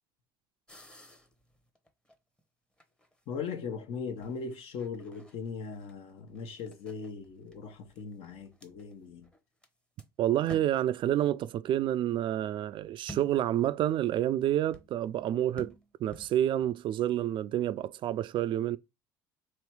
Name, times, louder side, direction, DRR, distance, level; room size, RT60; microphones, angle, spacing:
sound 1, 0.7-2.4 2.8-3.5 4.2-9.7 10.0-10.1 10.4-11.0 13.1-13.7 14.7-15.0 15.6-16.7, equal, 10° left, 0.9 m, -51 dB
voice 1, 3.3-9.3, left 5 dB, 60° left, 1.1 m, -39 dB
voice 2, 10.2-15.7 16.0-18.8, right 12 dB, 50° right, 0.3 m, -29 dB
3.1 x 3.0 x 4.7 m
hypercardioid pair, 75°, 11 cm